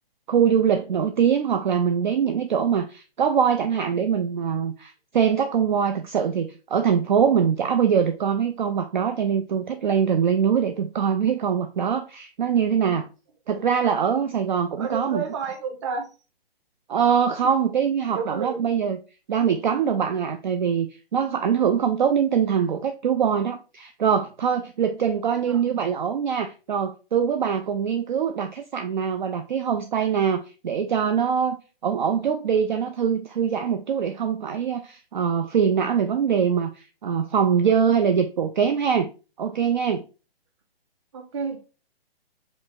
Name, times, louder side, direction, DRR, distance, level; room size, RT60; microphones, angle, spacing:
voice 1, 0.3-13.1 13.5-15.2 16.9-19.0 19.3-20.9 21.1-31.6 31.8-39.1 39.4-40.0, right 7 dB, 50° right, 0.4 m, -23 dB
voice 2, 14.8-16.1 17.4-17.5 18.1-18.7 25.5-25.8 41.1-41.6, right 5 dB, 30° right, 0.8 m, -31 dB
5.2 x 2.4 x 3.4 m
figure-of-eight pair, 130°, 31 cm